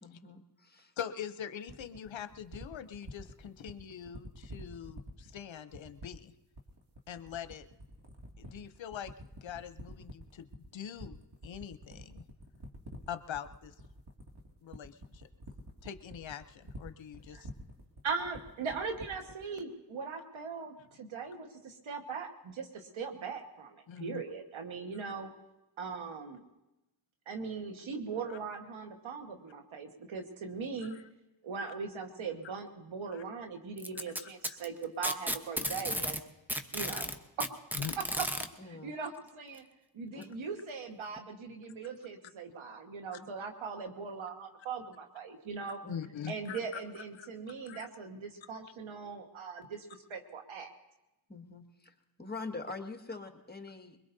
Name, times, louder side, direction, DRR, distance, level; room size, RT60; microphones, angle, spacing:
voice 1, 0.0-0.9 38.6-38.9 40.1-40.4 45.8-45.9 51.3-54.0, left 3 dB, 20° left, 4 dB, 1.8 m, -44 dB
voice 2, 1.0-6.3 7.1-7.7 8.4-10.5 10.7-11.2 11.4-12.2 13.1-13.7 14.6-15.3 15.8-17.5 23.9-24.2 24.9-25.0 28.3-28.4 30.8-31.1 31.7-31.8 33.1-33.2 34.5-34.6 36.9-37.0 37.7-38.0 43.1-43.2 45.9-47.3 47.6-47.9, left 8 dB, 75° left, 11 dB, 0.8 m, -43 dB
sound 1, 1.7-19.4, equal, 60° right, 2.3 m, -48 dB
voice 3, 18.0-25.3 25.8-26.4 27.3-30.9 31.4-36.2 36.7-37.1 38.6-39.6 39.9-45.8 46.3-50.7, right 5 dB, 90° right, 4 dB, 1.6 m, -40 dB
Packing tape duct tape, 33.8-36.2 36.5-38.5 39.6-39.7 40.2-40.3 41.2-41.3, equal, 5° right, 1.0 m, -34 dB
23.0 x 21.0 x 2.7 m, 0.96 s
cardioid pair, 50°, 46 cm